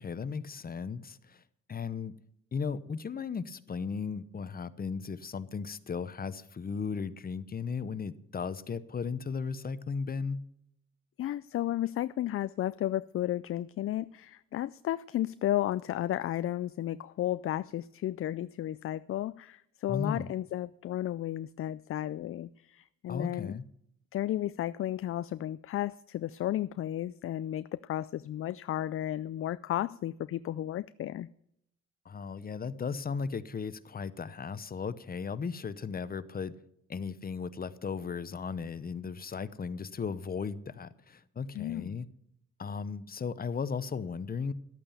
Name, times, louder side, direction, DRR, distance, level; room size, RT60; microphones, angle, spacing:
voice 1, 0.0-1.4 1.7-2.1 2.5-10.4 19.9-20.3 23.1-23.6 32.0-36.6 36.9-42.1 42.6-44.5, left 5 dB, 30° left, 0.8 m, -36 dB
voice 2, 11.2-23.5 24.1-31.3 41.5-42.0, left 13 dB, 45° left, 0.4 m, -33 dB
12.0 x 8.7 x 7.1 m
cardioid pair, 90°, 30 cm